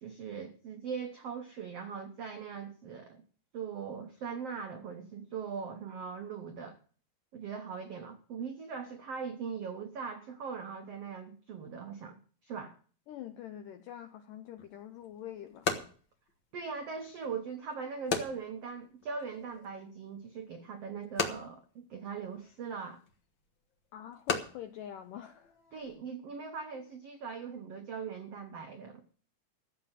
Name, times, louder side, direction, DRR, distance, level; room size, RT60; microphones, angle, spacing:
voice 1, 0.0-3.2 3.5-6.8 7.3-12.8 16.5-23.0 25.7-29.0, right 6 dB, 80° right, 1.3 m, -40 dB
voice 2, 13.1-15.7 23.9-25.9, left 11 dB, 80° left, 1.9 m, -45 dB
sound 1, 14.6-26.0, left 5 dB, 65° left, 1.2 m, -40 dB
14.5 x 7.1 x 7.4 m
omnidirectional pair, 4.6 m